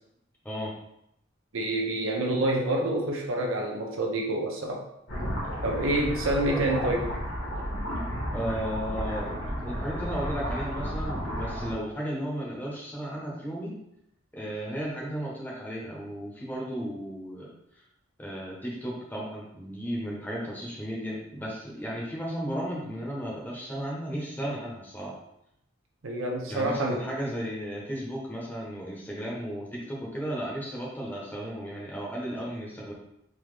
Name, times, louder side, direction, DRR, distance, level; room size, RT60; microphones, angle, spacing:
voice 1, 1.5-4.8 5.6-7.1 26.0-27.1, right 1 dB, 80° right, 1 dB, 0.7 m, -27 dB
sound 1, 5.1-11.7, equal, 60° left, 1.2 m, -32 dB
voice 2, 8.3-9.3 9.6-13.8 14.3-17.5 18.2-25.2 26.5-32.9, equal, 10° left, -4 dB, 0.9 m, -34 dB
3.7 x 2.9 x 3.2 m, 0.79 s
head